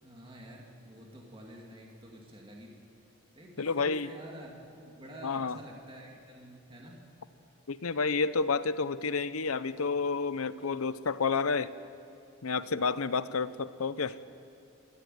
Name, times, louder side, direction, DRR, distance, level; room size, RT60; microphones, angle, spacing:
voice 1, 0.0-2.8 3.4-7.0, equal, 25° right, -1 dB, 2.5 m, -48 dB
voice 2, 3.6-4.1 5.2-5.6 7.7-11.7 12.4-14.2, left 4 dB, 85° left, 14 dB, 0.8 m, -30 dB
28.5 x 13.5 x 9.3 m, 2.7 s
head